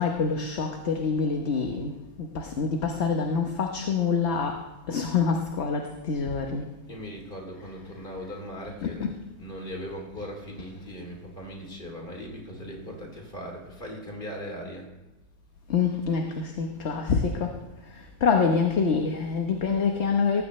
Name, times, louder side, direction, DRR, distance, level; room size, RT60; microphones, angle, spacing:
voice 1, 0.0-1.9 2.2-4.6 4.9-6.7 8.8-9.1 15.7-17.5 18.2-20.4, left 5 dB, 50° left, 3 dB, 1.3 m, -26 dB
voice 2, 6.9-9.1 9.4-14.9, equal, 35° left, 1 dB, 3.3 m, -39 dB
18.5 x 15.0 x 3.2 m, 1.1 s
omnidirectional pair, 1.6 m